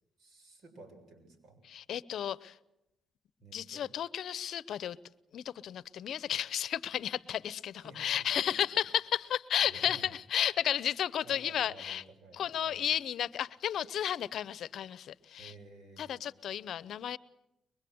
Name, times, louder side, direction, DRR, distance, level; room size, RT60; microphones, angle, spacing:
voice 1, 0.2-1.6 3.4-3.9 7.8-8.1 9.2-9.3 9.6-10.1 10.4-10.7 11.2-12.9 15.4-16.2, right 2 dB, 60° right, 5 dB, 7.2 m, -53 dB
voice 2, 1.7-2.6 3.5-5.0 5.3-12.0 12.4-15.5 16.0-17.2, left 10 dB, 70° left, 18 dB, 0.8 m, -33 dB
23.0 x 22.5 x 7.9 m, 0.88 s
cardioid pair, 90°, 0 cm